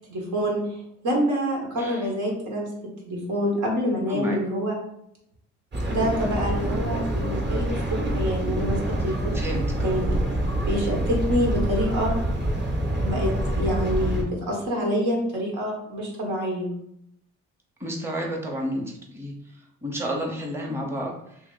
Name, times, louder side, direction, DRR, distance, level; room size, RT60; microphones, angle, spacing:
voice 1, 0.1-0.6 1.0-4.8 5.9-9.3 9.8-10.1 10.7-12.1 13.0-16.7, equal, 80° right, -1 dB, 1.3 m, -27 dB
sound 1, 5.7-14.2, right 1 dB, 35° right, 1.0 m, -26 dB
voice 2, 9.3-10.1 17.8-21.4, equal, 10° right, -1 dB, 0.8 m, -31 dB
2.9 x 2.8 x 3.9 m, 0.75 s
cardioid pair, 90°, 30 cm